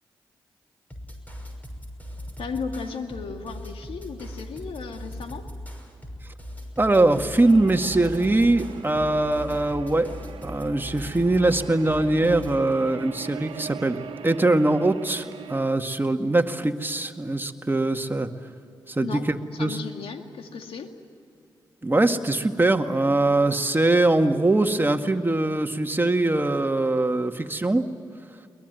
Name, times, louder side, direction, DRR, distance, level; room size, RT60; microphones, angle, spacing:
sound 1, 0.9-12.6, equal, 15° left, 6.1 m, -39 dB
voice 1, 2.4-5.4 19.0-19.3 19.5-20.9, left 5 dB, 75° left, 5 dB, 2.1 m, -35 dB
voice 2, 6.8-10.1 10.4-14.0 14.2-18.3 18.9-19.8 21.8-27.9, right 2 dB, 20° right, 5 dB, 2.0 m, -22 dB
sound 2, 7.4-15.6, right 7 dB, 70° right, 1.5 m, -41 dB
22.5 x 20.5 x 9.4 m, 2.5 s
supercardioid pair, 40°, 10 cm